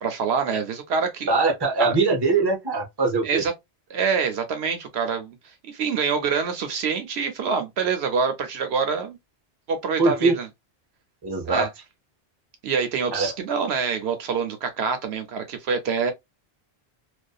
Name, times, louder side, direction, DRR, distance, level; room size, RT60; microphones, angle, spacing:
voice 1, 0.0-1.4 1.8-2.0 3.2-3.5 3.9-9.2 9.7-10.5 11.4-11.7 12.6-16.1, right 5 dB, 70° right, 0.8 m, -26 dB
voice 2, 1.3-3.4 10.0-10.4 11.2-11.7 13.1-13.3, right 3 dB, 25° right, 0.7 m, -22 dB
2.7 x 2.3 x 2.2 m
omnidirectional pair, 1.1 m